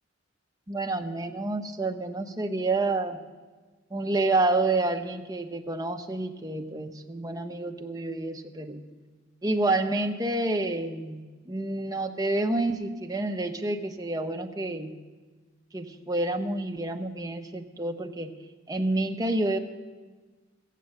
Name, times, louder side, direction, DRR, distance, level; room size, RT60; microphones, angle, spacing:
voice 1, 0.7-3.2 3.9-8.8 9.4-14.9 15.7-18.3 18.7-19.6, right 2 dB, 20° right, 4 dB, 0.7 m, -29 dB
14.5 x 8.3 x 7.7 m, 1.3 s
head